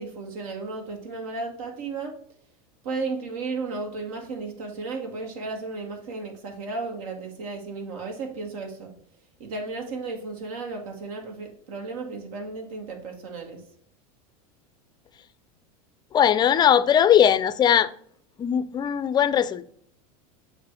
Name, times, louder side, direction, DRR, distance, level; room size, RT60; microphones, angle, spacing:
voice 1, 0.0-2.1 2.8-8.9 9.4-13.6, right 3 dB, 70° right, 1.4 m, -34 dB
voice 2, 16.1-17.9 18.4-19.7, left 9 dB, 25° left, 0.4 m, -19 dB
7.4 x 2.5 x 5.7 m
supercardioid pair, 120°, 19 cm